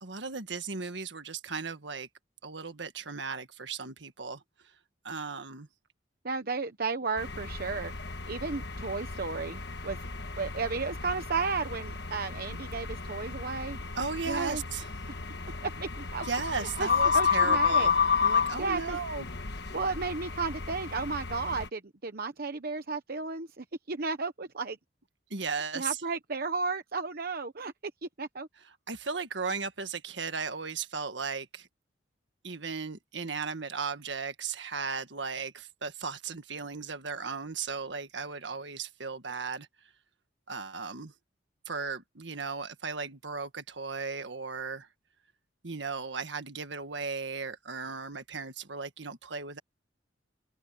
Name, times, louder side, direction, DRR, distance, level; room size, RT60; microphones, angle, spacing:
voice 1, 0.0-2.1 2.4-4.4 5.0-5.7 14.0-14.9 16.2-18.0 18.2-19.3 25.3-26.0 28.9-31.7 32.4-39.7 40.5-41.1 41.7-44.9 45.6-49.6, right 5 dB, 70° right, 1.7 m, -36 dB
voice 2, 6.2-7.9 8.3-10.0 10.4-13.8 14.3-14.6 15.8-16.3 16.6-16.9 17.1-17.9 18.6-19.0 19.7-24.8 25.7-27.7 28.2-28.5, right 4 dB, 55° right, 1.0 m, -33 dB
sound 1, 7.2-21.7, left 5 dB, 65° left, 1.3 m, -31 dB
head